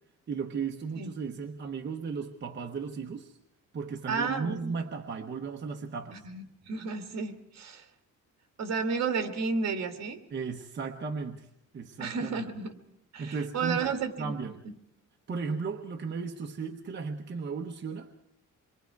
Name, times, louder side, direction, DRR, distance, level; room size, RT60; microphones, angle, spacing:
voice 1, 0.3-3.3 3.7-6.3 10.3-11.5 11.7-12.4 13.2-13.8 14.2-14.6 15.3-18.1, right 5 dB, 35° right, 2 dB, 1.0 m, -35 dB
voice 2, 4.1-4.8 6.1-7.8 8.6-10.2 12.0-12.8 13.1-14.3 14.7-14.8, right 5 dB, 55° right, 6 dB, 1.9 m, -32 dB
27.0 x 23.0 x 4.7 m, 0.78 s
cardioid pair, 155°, 32 cm